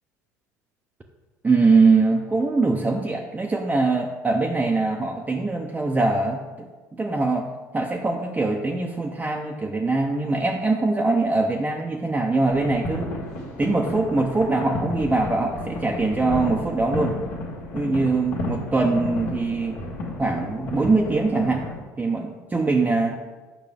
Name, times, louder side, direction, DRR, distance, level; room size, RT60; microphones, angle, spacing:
voice 1, 1.4-13.1 13.6-17.2 17.7-19.8 20.2-21.7 22.0-23.2, right 3 dB, 15° right, 0 dB, 0.7 m, -22 dB
sound 1, 12.5-21.7, left 2 dB, 65° left, 1.8 m, -32 dB
8.4 x 5.4 x 3.4 m, 1.3 s
hypercardioid pair, 65°, 9 cm